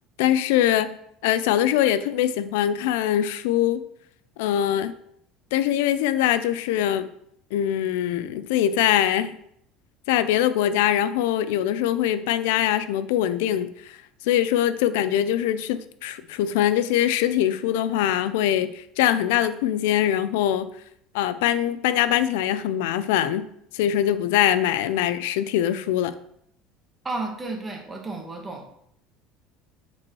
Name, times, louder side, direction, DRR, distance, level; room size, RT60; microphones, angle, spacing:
voice 1, 0.2-1.0 1.2-3.8 4.4-4.9 5.5-7.1 7.5-9.3 10.1-14.0 14.2-20.7 21.1-23.5 23.7-26.1, left 11 dB, 85° left, 13 dB, 0.4 m, -23 dB
voice 2, 27.0-28.7, right 3 dB, 15° right, 2 dB, 1.3 m, -32 dB
8.5 x 4.6 x 3.1 m, 0.71 s
cardioid pair, 130°, 0 cm